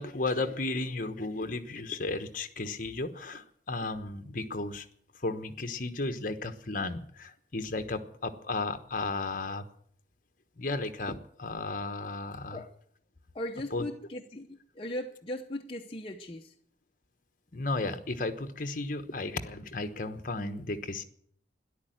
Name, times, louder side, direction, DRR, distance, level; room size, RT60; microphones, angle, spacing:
voice 1, 0.0-4.9 5.2-9.6 10.6-12.6 13.7-13.8 17.5-21.0, left 2 dB, 45° left, 1.2 m, -34 dB
voice 2, 13.3-16.5, left 1 dB, 30° left, 0.8 m, -38 dB
13.5 x 11.0 x 9.2 m
head